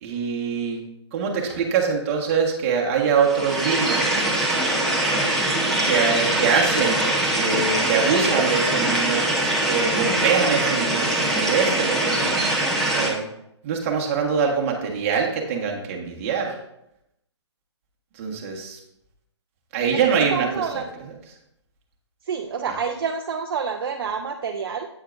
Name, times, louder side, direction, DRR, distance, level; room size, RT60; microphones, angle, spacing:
voice 1, 0.0-0.8 1.1-4.2 5.8-7.0 7.4-9.2 9.6-12.4 12.9-13.3 13.6-16.6 18.2-18.8 19.7-20.5, right 6 dB, 30° right, 1 dB, 1.3 m, -23 dB
sound 1, 3.2-13.1, right 1 dB, ahead, 0.8 m, -22 dB
voice 2, 19.9-20.9 22.2-24.9, right 6 dB, 50° right, 3 dB, 0.6 m, -28 dB
8.3 x 8.2 x 2.5 m, 0.82 s
hypercardioid pair, 160°, 15 cm